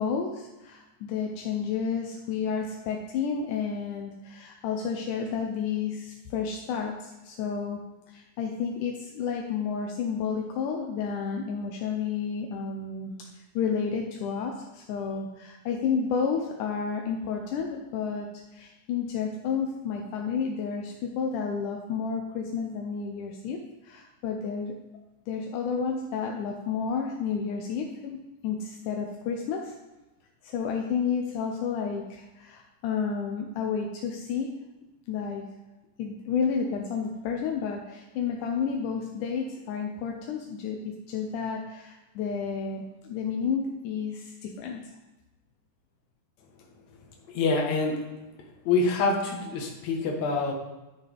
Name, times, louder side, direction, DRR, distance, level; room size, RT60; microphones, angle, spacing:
voice 1, 0.0-7.8 8.1-13.2 13.6-24.7 25.3-29.7 30.4-34.5 35.1-35.4 36.0-44.8, left 6 dB, 80° left, 2 dB, 2.3 m, -31 dB
voice 2, 47.3-48.1 48.4-50.5, left 3 dB, 65° left, 1 dB, 2.6 m, -26 dB
12.5 x 6.7 x 3.5 m, 1.0 s
omnidirectional pair, 3.6 m